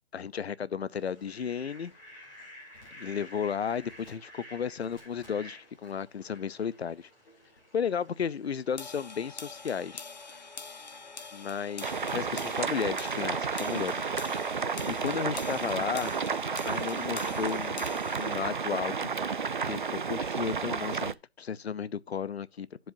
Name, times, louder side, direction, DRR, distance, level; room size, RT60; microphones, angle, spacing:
voice 1, 0.1-1.9 3.0-7.1 7.7-10.1 11.3-14.1 14.9-16.2 16.6-17.8 18.2-19.1 19.6-22.9, left 7 dB, 70° left, 0.6 m, -34 dB
Fowl, 0.9-19.1, left 1 dB, 20° left, 3.2 m, -54 dB
sound 1, 8.8-18.4, left 4 dB, 40° left, 0.8 m, -44 dB
sound 2, 11.8-21.1, right 5 dB, 50° right, 0.5 m, -32 dB
12.0 x 7.7 x 2.7 m
figure-of-eight pair, 165°, 32 cm